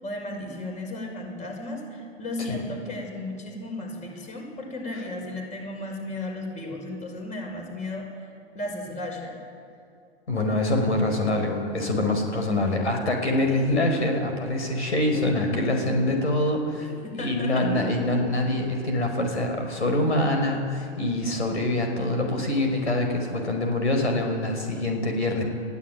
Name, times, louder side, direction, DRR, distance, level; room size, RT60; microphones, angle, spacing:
voice 1, 0.0-8.3 8.5-9.4 13.4-13.8 17.0-17.7, left 2 dB, 20° left, 2 dB, 5.5 m, -34 dB
voice 2, 10.3-16.9 17.1-25.4, left 1 dB, 80° left, 3 dB, 5.1 m, -25 dB
22.0 x 15.0 x 9.1 m, 2.4 s
hypercardioid pair, 115°, 33 cm